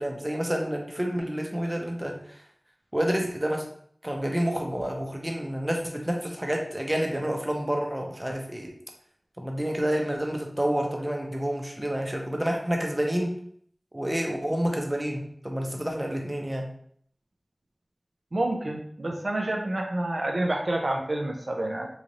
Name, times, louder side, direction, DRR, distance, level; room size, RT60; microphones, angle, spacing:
voice 1, 0.0-2.4 2.9-3.7 4.0-8.7 9.4-13.4 13.9-16.7, equal, 20° right, 1 dB, 0.6 m, -29 dB
voice 2, 18.3-21.9, right 1 dB, 80° right, 2 dB, 0.4 m, -28 dB
3.1 x 2.4 x 3.9 m, 0.63 s
wide cardioid pair, 50°, 0 cm